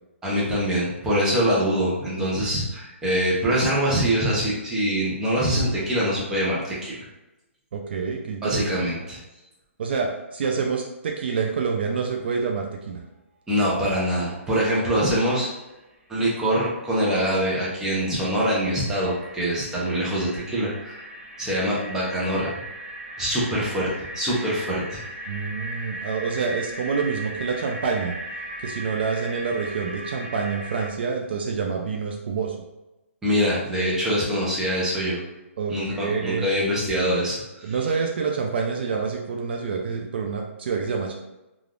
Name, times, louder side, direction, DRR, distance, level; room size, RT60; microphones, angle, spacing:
voice 1, 0.2-7.1 8.4-9.2 13.5-15.5 16.1-21.1 21.4-22.5 23.2-25.0 33.2-35.2 35.7-37.7, equal, 5° right, -7 dB, 0.6 m, -24 dB
voice 2, 7.7-8.7 9.8-13.0 25.3-28.1 28.6-32.6 35.6-36.7 37.6-41.1, right 5 dB, 50° right, 1 dB, 0.3 m, -27 dB
sound 1, 15.9-16.0 16.2-30.9, right 1 dB, 65° right, 0.9 m, -38 dB
3.3 x 2.3 x 2.4 m, 1.0 s
hypercardioid pair, 165°, 7 cm